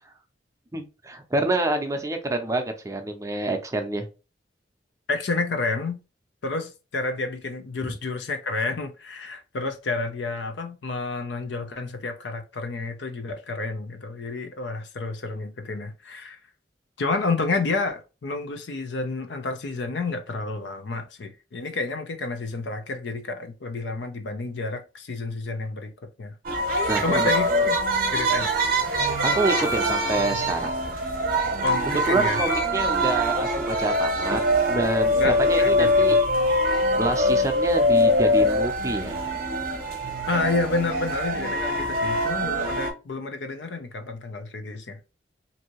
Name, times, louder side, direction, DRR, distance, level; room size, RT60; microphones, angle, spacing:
voice 1, 0.7-4.1 7.8-7.9 26.9-27.2 29.2-30.7 31.4-31.6 31.9-34.4 34.7-36.2 37.0-39.2, right 2 dB, 20° right, 0.5 m, -27 dB
voice 2, 5.1-6.0 6.4-16.4 17.0-26.3 27.0-27.8 28.1-28.5 31.6-32.4 35.2-36.2 40.3-45.0, left 3 dB, 85° left, 0.5 m, -30 dB
sound 1, 26.4-42.9, equal, 55° right, 0.8 m, -23 dB
2.7 x 2.6 x 2.9 m
head